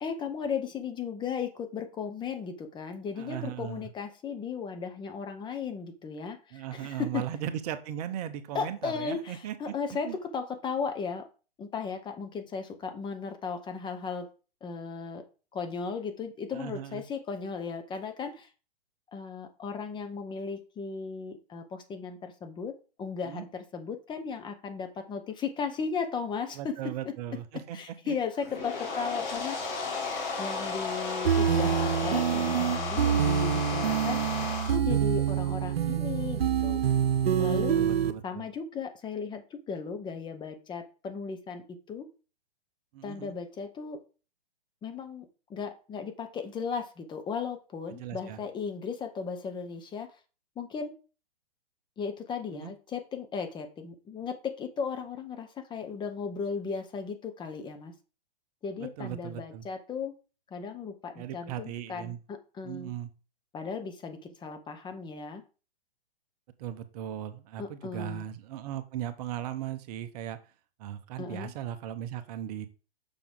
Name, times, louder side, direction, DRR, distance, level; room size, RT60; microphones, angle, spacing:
voice 1, 0.0-7.2 8.5-11.3 11.6-14.3 14.6-15.2 15.5-18.5 19.1-26.7 27.7-29.7 30.4-34.3 34.7-36.8 37.4-37.8 38.2-42.1 43.0-44.0 44.8-50.2 50.6-50.9 52.0-57.9 58.6-60.1 60.5-62.9 63.5-65.4 67.6-68.2 71.2-71.5, left 5 dB, 15° left, 6 dB, 0.8 m, -36 dB
voice 2, 3.2-3.9 6.5-9.7 10.0-10.2 16.5-17.0 23.2-23.4 26.5-28.2 37.7-38.5 42.9-43.3 47.9-48.4 52.5-52.7 58.8-59.7 61.2-62.2 62.6-63.1 66.6-70.5 70.8-72.7, right 11 dB, 40° right, 10 dB, 0.9 m, -38 dB
sound 1, 28.3-34.7, left 3 dB, 35° left, 3.3 m, -34 dB
sound 2, 31.2-38.1, right 8 dB, 75° right, 1.0 m, -26 dB
6.9 x 6.0 x 3.8 m, 0.34 s
hypercardioid pair, 125°, 30 cm